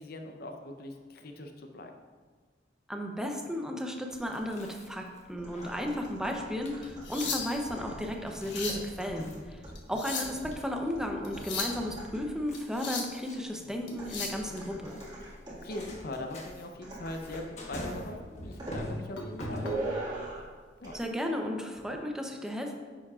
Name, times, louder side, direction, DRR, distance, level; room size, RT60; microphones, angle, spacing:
voice 1, 0.0-1.9 8.7-8.8 13.6-13.7 15.2-19.8 20.8-21.0, left 1 dB, 55° left, 4 dB, 0.6 m, -41 dB
voice 2, 2.9-9.6 9.9-15.0 20.9-22.7, equal, 5° right, 2 dB, 0.7 m, -34 dB
Chewing mastication, 4.1-20.1, left 1 dB, 40° left, 1.2 m, -45 dB
sound 1, 5.4-12.5 14.0-16.0 16.8-17.5 17.9-18.1 18.6-18.9 19.6-20.5 20.8-21.0, right 2 dB, 20° right, 1.9 m, -42 dB
sound 2, 6.8-7.7 8.3-8.9 9.7-10.5 11.2-11.8 12.5-13.2 13.9-14.4 16.5-16.6 17.1-17.4 17.8-18.0 19.1-19.7 20.8-21.0, left 4 dB, 75° left, 1.1 m, -37 dB
9.7 x 7.0 x 2.4 m, 1.5 s
head